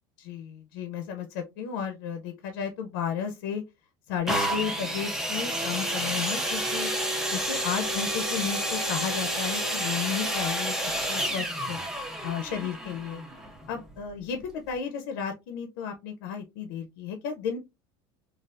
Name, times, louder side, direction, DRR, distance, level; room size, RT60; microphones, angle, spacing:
voice 1, 0.2-3.6 4.1-6.9 7.3-13.2 13.7-17.6, left 7 dB, 85° left, 0.5 m, -33 dB
sound 1, 4.3-14.0 14.7-14.8, equal, 5° right, 0.3 m, -30 dB
3.3 x 2.3 x 2.4 m
cardioid pair, 175°, 11 cm